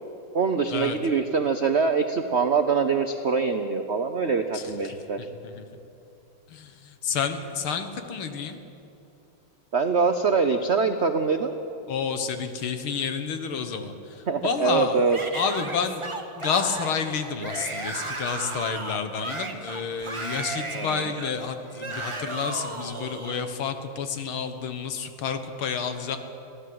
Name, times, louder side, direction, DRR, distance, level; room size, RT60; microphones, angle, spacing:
voice 1, 0.3-5.2 9.7-11.5 14.3-15.2 20.7-21.2, right 5 dB, 70° right, 7 dB, 0.6 m, -24 dB
voice 2, 7.0-8.6 11.9-13.9 14.4-15.0 15.4-16.0 16.4-26.2, left 6 dB, 75° left, 8 dB, 2.1 m, -29 dB
Yell / Screaming, 15.1-23.4, right 2 dB, 20° right, 1.0 m, -35 dB
22.0 x 16.0 x 7.7 m, 2.8 s
omnidirectional pair, 2.3 m